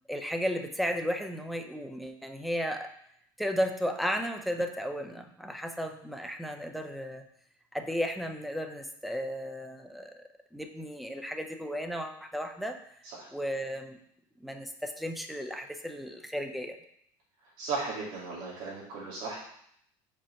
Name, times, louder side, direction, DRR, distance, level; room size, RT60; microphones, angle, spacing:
voice 1, 0.1-2.9 3.4-7.2 7.7-10.2 10.5-12.8 13.3-14.0 14.4-16.8, equal, ahead, 5 dB, 0.5 m, -34 dB
voice 2, 17.6-19.4, right 4 dB, 60° right, -6 dB, 2.4 m, -36 dB
5.4 x 4.3 x 5.6 m, 0.70 s
cardioid pair, 150°, 10 cm